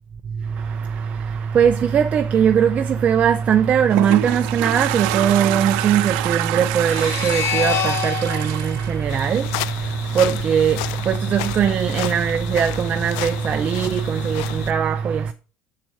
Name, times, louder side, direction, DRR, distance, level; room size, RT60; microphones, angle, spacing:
voice 1, 0.4-15.3, right 8 dB, 30° right, 0.5 m, -20 dB
Toilet flush, 3.5-9.9, right 14 dB, 85° right, 0.7 m, -27 dB
sound 1, 6.8-10.1, left 8 dB, 60° left, 1.5 m, -28 dB
sound 2, 9.1-14.7, left 16 dB, 80° left, 0.3 m, -31 dB
7.6 x 4.5 x 5.4 m
cardioid pair, 145°, 4 cm